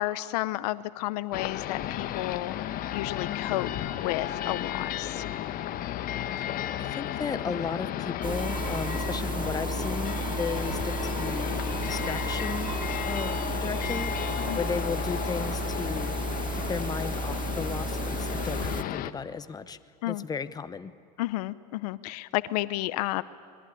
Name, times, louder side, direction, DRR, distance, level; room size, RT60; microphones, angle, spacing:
voice 1, 0.0-5.2 14.5-14.6 20.0-20.2 21.2-23.2, left 17 dB, 70° left, 16 dB, 0.8 m, -32 dB
sound 1, 1.3-19.1, left 11 dB, 45° left, 1.2 m, -33 dB
voice 2, 6.8-11.5 11.8-12.8 13.1-14.1 14.5-16.2 16.5-19.8 20.0-20.9, left 5 dB, 20° left, 13 dB, 1.0 m, -35 dB
sound 2, 8.2-18.8, right 4 dB, 25° right, 0.9 m, -33 dB
26.5 x 21.5 x 10.0 m, 2.3 s
supercardioid pair, 105°, 21 cm